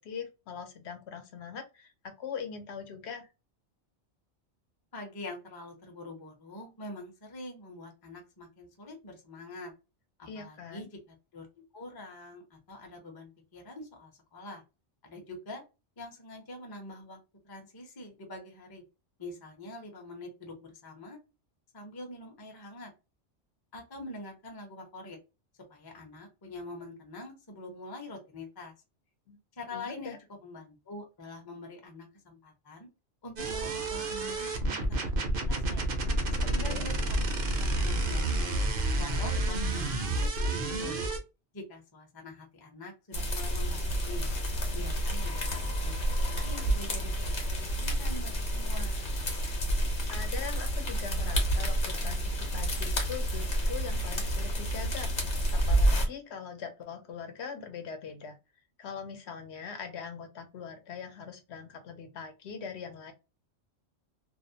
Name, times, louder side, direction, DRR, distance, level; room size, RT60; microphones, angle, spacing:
voice 1, 0.0-3.3 10.3-10.9 29.3-29.4 29.7-30.2 36.7-36.9 50.1-58.4 58.8-63.1, left 6 dB, 75° left, 0.9 m, -42 dB
voice 2, 4.9-9.7 10.2-11.0 11.3-11.5 11.7-14.6 15.0-15.6 16.0-17.2 17.4-18.8 19.2-21.2 21.7-22.9 23.7-25.2 25.7-28.7 29.6-32.9 33.2-35.8 36.4-36.9 37.2-37.5 37.8-38.6 39.0-41.0 41.5-44.2 44.7-49.1, left 2 dB, 25° left, 0.5 m, -45 dB
sound 1, 33.4-41.2, right 1 dB, 55° right, 0.7 m, -30 dB
sound 2, 43.1-56.1, right 1 dB, 50° left, 0.9 m, -29 dB
2.5 x 2.0 x 2.6 m
omnidirectional pair, 1.2 m